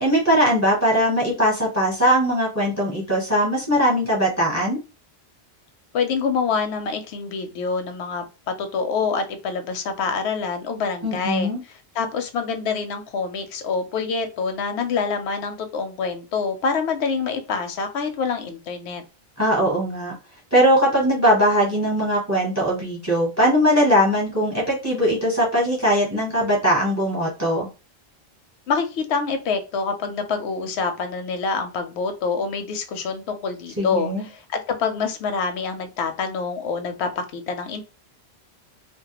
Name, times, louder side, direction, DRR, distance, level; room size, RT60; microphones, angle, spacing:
voice 1, 0.0-4.8 11.0-11.6 19.4-20.1 20.5-27.7 33.8-34.3, equal, 20° right, -2 dB, 0.8 m, -20 dB
voice 2, 5.9-11.5 11.9-19.0 28.7-37.8, left 5 dB, 85° left, 8 dB, 0.8 m, -26 dB
2.2 x 2.1 x 2.8 m, 0.30 s
omnidirectional pair, 1.1 m